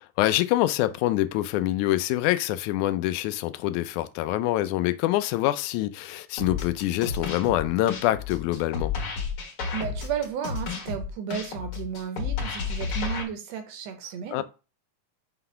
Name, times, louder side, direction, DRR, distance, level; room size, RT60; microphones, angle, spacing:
voice 1, 0.2-8.9 14.3-14.4, left 15 dB, 80° left, 1.9 m, -25 dB
sound 1, 6.4-13.2, left 5 dB, 50° left, 2.2 m, -31 dB
voice 2, 9.7-14.4, right 8 dB, 70° right, 1.8 m, -33 dB
6.0 x 3.9 x 5.6 m
omnidirectional pair, 3.5 m